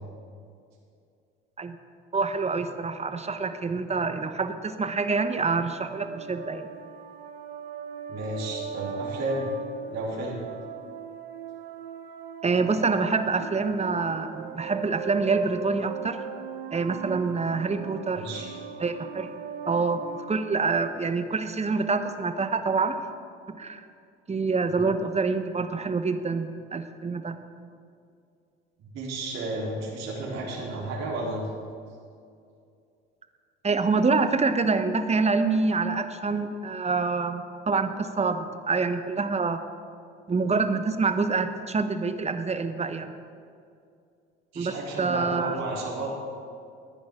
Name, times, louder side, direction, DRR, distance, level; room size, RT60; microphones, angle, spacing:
voice 1, 2.1-6.7 12.4-16.2 16.7-18.3 18.8-19.3 19.7-23.0 23.5-23.8 24.3-27.4 33.6-39.6 40.3-43.1 44.6-45.6, right 4 dB, 20° right, 9 dB, 1.1 m, -26 dB
sound 1, 5.7-21.1, right 7 dB, 80° right, 1.1 m, -40 dB
voice 2, 8.1-9.5 9.9-10.5 18.1-18.5 24.7-24.9 28.8-31.5 44.5-46.1, right 2 dB, 60° right, -4 dB, 3.9 m, -32 dB
19.5 x 10.5 x 3.8 m, 2.4 s
hypercardioid pair, 65°, 30 cm